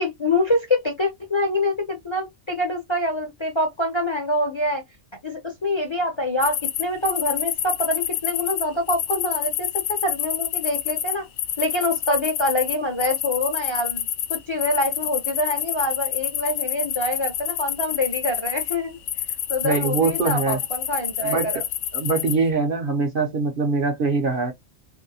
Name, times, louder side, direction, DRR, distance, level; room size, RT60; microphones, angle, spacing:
voice 1, 0.0-4.8 5.2-11.2 11.6-19.0 19.5-21.6, left 1 dB, 35° left, 0.5 m, -25 dB
sound 1, 6.4-18.7 19.1-22.3, left 10 dB, 80° left, 0.9 m, -28 dB
voice 2, 19.6-20.6 21.2-21.5 21.9-24.5, right 4 dB, 55° right, 0.7 m, -23 dB
3.1 x 2.7 x 2.6 m
omnidirectional pair, 1.3 m